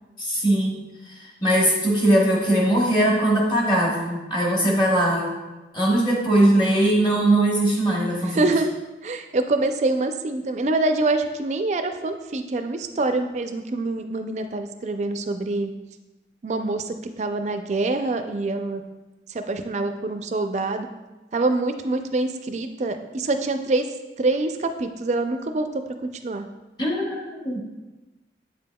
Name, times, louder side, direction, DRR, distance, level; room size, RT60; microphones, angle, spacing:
voice 1, 0.2-0.8 1.1-5.3 5.7-8.4 26.8-27.6, right 1 dB, 25° left, -3 dB, 1.0 m, -20 dB
voice 2, 8.2-8.7 9.0-15.7 16.4-18.8 19.3-20.9 21.3-23.9 24.2-25.7 26.0-26.5, right 2 dB, 40° right, 7 dB, 0.4 m, -25 dB
8.0 x 5.3 x 2.2 m, 1.1 s
head